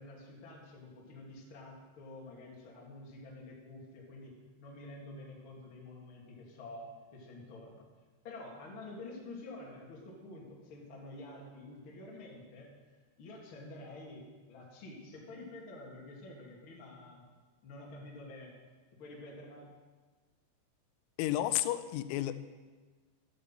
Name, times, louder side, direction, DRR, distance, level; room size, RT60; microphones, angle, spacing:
voice 1, 0.0-4.3 4.6-6.9 7.1-7.8 8.2-12.7 13.2-14.2 14.5-17.2 17.6-18.5 19.0-19.7, left 2 dB, 35° left, -2 dB, 2.4 m, -48 dB
voice 2, 21.2-22.3, left 14 dB, 85° left, 12 dB, 3.0 m, -31 dB
12.5 x 8.7 x 7.5 m, 1.4 s
omnidirectional pair, 5.4 m